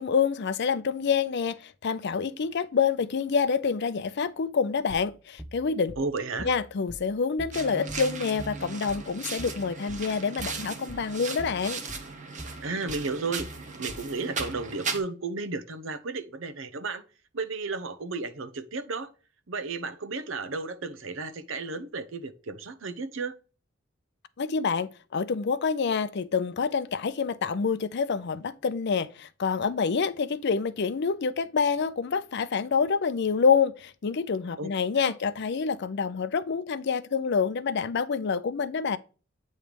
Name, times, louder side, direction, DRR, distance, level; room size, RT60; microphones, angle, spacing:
voice 1, 0.0-5.9 6.4-11.8 24.4-39.0, left 5 dB, 55° left, 0.5 m, -27 dB
sound 1, 4.9-14.7, equal, ahead, 0.5 m, -44 dB
voice 2, 6.0-6.5 12.6-13.5 13.8-17.0 17.3-19.1 19.5-23.4 34.6-34.7 35.1-35.2, right 3 dB, 70° right, 0.8 m, -33 dB
sound 2, 7.5-15.0, right 4 dB, 40° right, 1.1 m, -37 dB
8.7 x 3.2 x 5.0 m
head